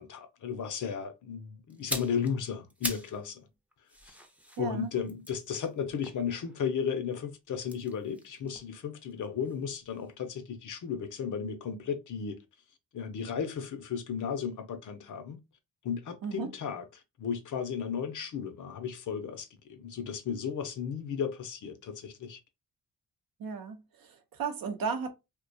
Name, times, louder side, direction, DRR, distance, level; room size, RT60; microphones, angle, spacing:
voice 1, 0.0-3.5 4.1-4.2 4.6-12.4 12.9-15.4 15.8-16.8 17.2-22.4, left 7 dB, 55° left, 0.6 m, -34 dB
sound 1, 1.7-3.2 3.5-6.8 7.6-9.6 9.9-10.1, equal, 5° right, 0.5 m, -42 dB
voice 2, 4.6-4.9 16.2-16.5 23.4-25.1, right 5 dB, 65° right, 0.7 m, -35 dB
2.4 x 2.2 x 2.6 m
cardioid pair, 65°, 38 cm